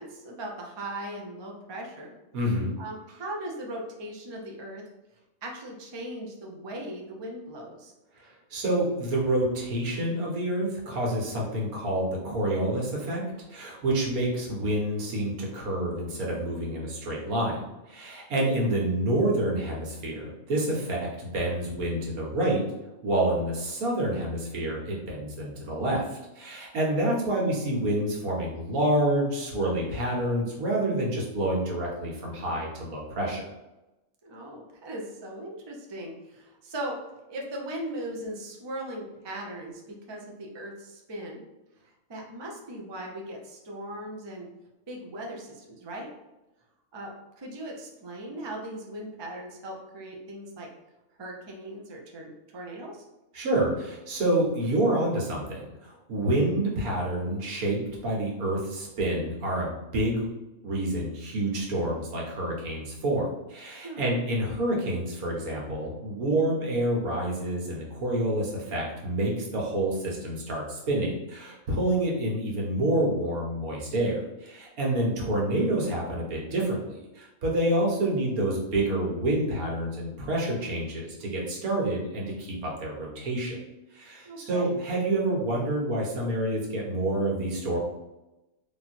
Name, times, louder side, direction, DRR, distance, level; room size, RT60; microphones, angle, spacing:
voice 1, 0.0-2.1 2.8-4.8 5.4-7.9 18.3-18.6 34.2-37.0 37.3-39.8 40.1-41.4 42.1-44.5 44.9-46.1 46.9-47.1 47.4-50.7 51.2-53.0 63.8-64.1 75.0-75.3 84.2-84.8, right 1 dB, 25° right, 0 dB, 0.6 m, -38 dB
voice 2, 2.3-2.7 8.2-13.2 13.5-17.6 17.9-22.6 23.0-26.0 26.4-33.5 53.3-60.3 60.6-83.6 83.9-87.8, right 1 dB, 85° right, -2 dB, 1.7 m, -28 dB
3.8 x 2.9 x 4.3 m, 0.98 s
omnidirectional pair, 1.5 m